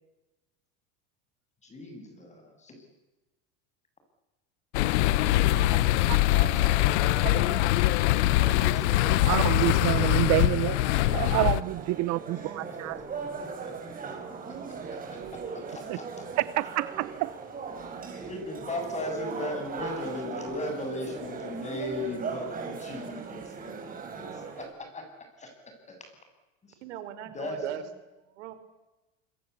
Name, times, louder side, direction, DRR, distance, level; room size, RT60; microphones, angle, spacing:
voice 1, 1.6-2.8 5.1-7.5 8.1-9.6 12.6-14.1 14.5-16.1 16.3-16.4 18.2-25.1 25.4-25.5 25.9-26.1 27.3-27.6, left 1 dB, 20° left, 5 dB, 8.0 m, -38 dB
sound 1, 4.7-11.6, left 15 dB, 85° left, 1.1 m, -23 dB
voice 2, 6.4-6.9 26.8-28.5, right 10 dB, 90° right, 11 dB, 3.9 m, -40 dB
voice 3, 7.2-7.6 9.3-10.8 11.1-13.0 15.9-16.0 16.4-17.3, right 18 dB, 55° right, 16 dB, 0.9 m, -28 dB
sound 2, 8.9-24.7, right 5 dB, 25° right, 5.9 m, -39 dB
26.5 x 23.5 x 8.5 m, 1.0 s
supercardioid pair, 135°, 34 cm